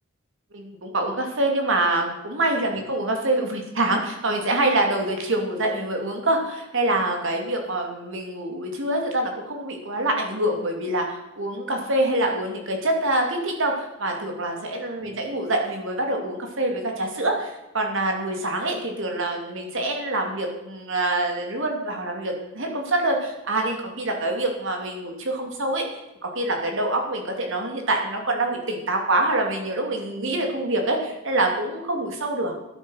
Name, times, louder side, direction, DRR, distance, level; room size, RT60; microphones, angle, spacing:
voice 1, 0.5-32.5, right 2 dB, 60° right, 3 dB, 2.8 m, -25 dB
12.5 x 9.4 x 6.5 m, 0.96 s
head